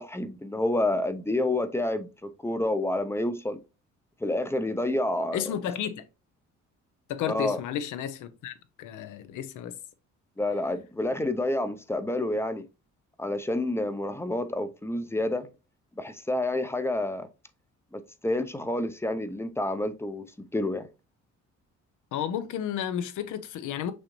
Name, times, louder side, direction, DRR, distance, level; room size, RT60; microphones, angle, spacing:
voice 1, 0.0-3.6 4.2-5.4 7.3-7.6 10.4-12.6 13.2-15.5 16.0-17.3 17.9-20.9, left 1 dB, 10° left, 0.5 m, -29 dB
voice 2, 5.3-6.1 7.1-9.7 22.1-23.9, left 9 dB, 80° left, 0.6 m, -32 dB
6.2 x 2.7 x 3.0 m
cardioid pair, 90°, 30 cm